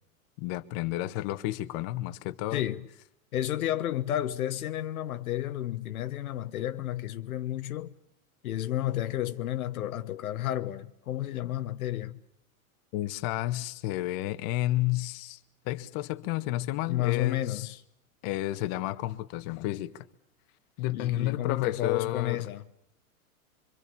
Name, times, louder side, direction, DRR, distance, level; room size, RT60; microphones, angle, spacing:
voice 1, 0.4-2.6 12.9-15.4 15.7-17.7 18.2-20.0 20.8-22.4, left 15 dB, 45° left, 1.6 m, -31 dB
voice 2, 2.5-2.9 3.3-7.9 8.4-12.2 16.9-17.8 20.9-22.6, left 13 dB, 75° left, 1.4 m, -31 dB
25.5 x 25.0 x 7.0 m
hypercardioid pair, 115°, 43 cm